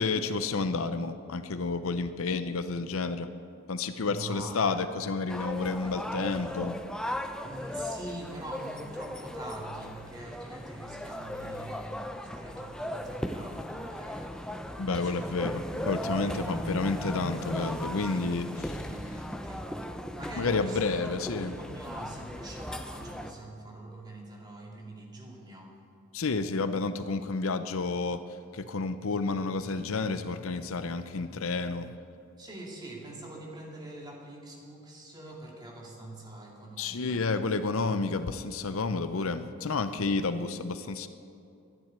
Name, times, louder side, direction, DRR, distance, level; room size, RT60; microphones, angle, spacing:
voice 1, 0.0-3.3 3.7-6.8 14.8-18.9 20.4-21.5 26.1-28.2 28.5-31.9 36.8-41.1, left 4 dB, 65° left, 11 dB, 0.6 m, -30 dB
voice 2, 4.1-4.8 7.4-15.4 15.7-16.7 17.9-20.8 21.4-25.7 32.4-37.2, right 1 dB, 20° right, -2 dB, 2.3 m, -44 dB
sound 1, 5.3-23.3, equal, 5° left, 0.5 m, -37 dB
12.0 x 10.5 x 9.7 m, 2.5 s
head